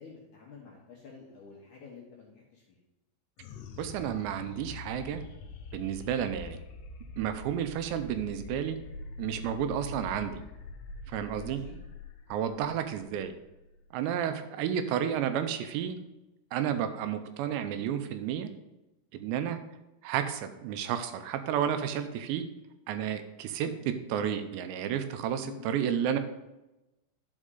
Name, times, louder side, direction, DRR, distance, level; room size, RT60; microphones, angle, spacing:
voice 1, 0.0-2.8 6.2-6.4 11.3-11.8 12.6-12.8 23.6-23.8 25.4-26.1, left 6 dB, 70° left, -4 dB, 1.9 m, -49 dB
sound 1, 3.4-14.1, left 3 dB, 85° left, 3.2 m, -44 dB
voice 2, 3.8-5.2 5.7-6.6 7.2-8.8 9.2-10.4 11.1-11.6 12.3-13.3 13.9-16.0 16.5-18.5 19.1-19.6 20.0-22.5 22.9-23.7 24.1-26.2, right 9 dB, 85° right, 9 dB, 2.8 m, -31 dB
11.0 x 5.4 x 3.8 m, 0.98 s
omnidirectional pair, 5.1 m